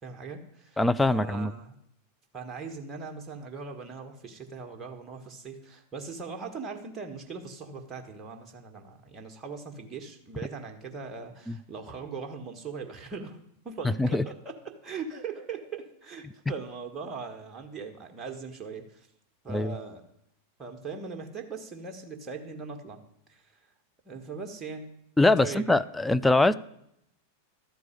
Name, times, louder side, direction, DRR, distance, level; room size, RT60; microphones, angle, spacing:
voice 1, 0.0-0.8 1.1-1.7 2.3-13.4 13.6-19.1 19.4-20.0 20.6-23.0 23.3-23.5 24.0-24.9 25.4-25.8 26.4-26.6, right 5 dB, 20° right, 3 dB, 1.4 m, -40 dB
voice 2, 0.8-1.5 11.5-11.6 13.8-14.2 19.5-19.7 25.2-26.5, left 2 dB, 5° left, 12 dB, 0.4 m, -23 dB
12.5 x 4.7 x 8.4 m, 0.76 s
figure-of-eight pair, 90°, 0 cm